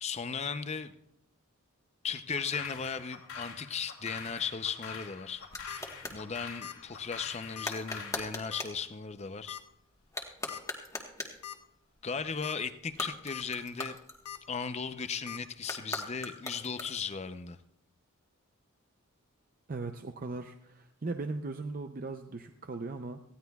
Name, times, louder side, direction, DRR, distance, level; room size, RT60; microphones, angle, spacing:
voice 1, 0.0-0.9 2.0-5.4 6.1-9.6 12.0-14.0 14.5-17.6, left 6 dB, 30° left, 11 dB, 0.5 m, -36 dB
sound 1, 2.3-8.3, left 6 dB, 70° left, 2.7 m, -45 dB
sound 2, 4.6-6.2 7.6-8.8 10.0-11.5 12.8-14.6 15.6-17.2, left 2 dB, 15° left, 1.3 m, -40 dB
sound 3, 5.3-5.8 6.6-6.9 7.1-7.2 7.6-7.7 8.5-8.8 9.5-9.6 10.5-10.6 11.1-11.2 11.4-11.6 12.2-12.5 13.0-13.4 14.2-14.4 15.3-15.4, left 10 dB, 85° left, 1.0 m, -42 dB
voice 2, 19.7-23.2, right 3 dB, 40° right, 6 dB, 0.5 m, -38 dB
19.0 x 15.0 x 2.3 m, 0.77 s
head